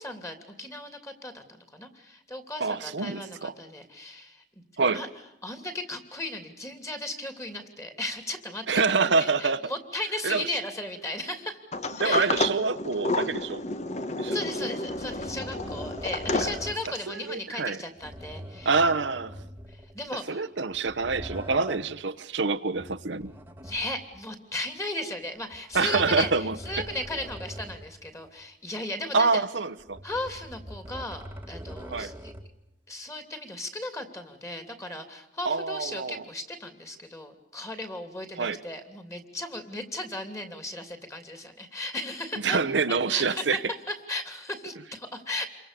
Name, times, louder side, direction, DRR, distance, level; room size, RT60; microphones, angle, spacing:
voice 1, 0.0-4.4 4.9-5.1 5.4-11.6 12.0-12.3 14.3-18.8 19.4-20.5 23.6-29.4 30.0-32.3 32.9-42.6 43.1-43.6 43.9-45.5, left 1 dB, 15° left, 7 dB, 2.9 m, -36 dB
voice 2, 2.6-3.5 4.8-5.0 8.7-9.6 10.2-10.4 12.0-13.6 14.2-14.4 17.1-17.8 18.6-19.3 20.3-23.3 25.7-26.6 29.1-30.0 31.9-32.1 35.4-36.2 38.4-38.6 42.4-43.6, right 4 dB, 80° right, 11 dB, 1.0 m, -26 dB
Sliding door, 11.7-17.2, left 2 dB, 40° left, 1.2 m, -30 dB
sound 1, 14.8-16.9 17.9-20.1 20.7-22.0 22.7-24.2 25.5-28.0 28.4-28.5 29.8-32.6, equal, 10° right, 1.6 m, -42 dB
28.5 x 23.5 x 6.8 m, 0.84 s
head